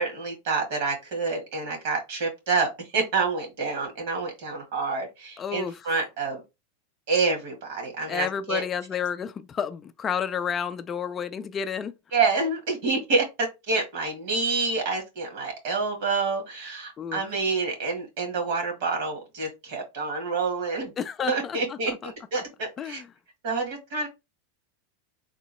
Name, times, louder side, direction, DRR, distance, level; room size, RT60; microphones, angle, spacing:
voice 1, 0.0-6.4 7.1-8.6 12.1-20.9 21.3-23.0 23.4-24.1, right 4 dB, 65° right, 1.9 m, -28 dB
voice 2, 5.4-5.9 8.1-11.9 17.0-17.2 21.0-22.1 22.8-23.1, left 7 dB, 25° left, 0.3 m, -31 dB
3.6 x 2.0 x 4.1 m
supercardioid pair, 130°, 0 cm